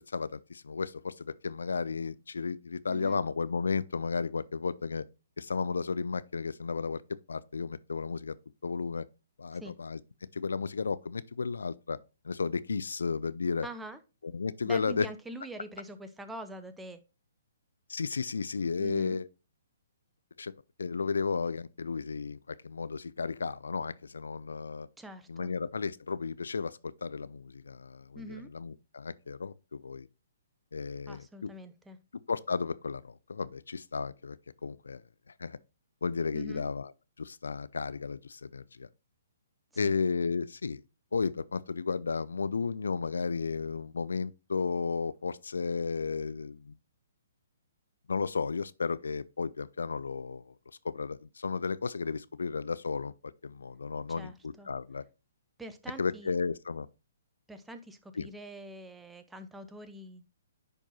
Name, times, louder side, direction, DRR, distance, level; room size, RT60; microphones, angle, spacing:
voice 1, 0.0-5.0 5.4-7.0 7.3-8.4 8.6-9.0 9.4-10.0 10.3-12.0 12.2-13.7 14.2-15.1 17.9-19.3 20.4-20.5 20.8-24.9 25.3-30.1 30.7-31.5 32.1-34.4 34.6-35.0 35.3-35.6 36.0-36.9 37.2-38.9 39.8-40.8 41.1-46.8 48.1-50.5 50.8-54.3 54.7-55.0 56.0-56.9 58.2-58.3, left 5 dB, 75° left, 0.3 m, -33 dB
voice 2, 2.9-3.2 9.6-9.7 13.6-14.0 14.6-17.0 18.8-19.2 25.0-25.5 28.1-28.5 31.1-32.0 36.3-36.7 39.8-39.9 54.1-54.7 55.6-56.3 57.5-60.2, right 1 dB, 5° right, 0.8 m, -44 dB
10.0 x 4.5 x 2.7 m
figure-of-eight pair, 130°, 0 cm